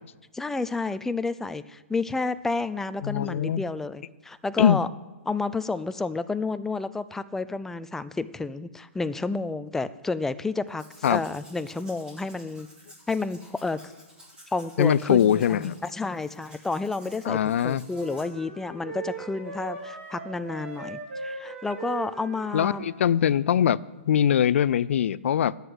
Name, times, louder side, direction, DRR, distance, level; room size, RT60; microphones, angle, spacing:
voice 1, 0.3-4.9 5.3-12.7 13.1-13.8 14.5-22.8, left 3 dB, 5° left, 13 dB, 0.4 m, -30 dB
voice 2, 3.0-3.6 4.6-4.8 11.0-11.2 14.8-15.7 17.2-17.8 22.5-23.8 24.0-25.6, left 9 dB, 65° left, 19 dB, 0.4 m, -22 dB
Domestic sounds home sounds, 10.7-18.2, equal, 10° right, 3.8 m, -53 dB
sound 1, 17.8-23.0, right 3 dB, 60° right, 5.3 m, -39 dB
11.0 x 8.1 x 9.6 m, 1.2 s
hypercardioid pair, 145°, 7 cm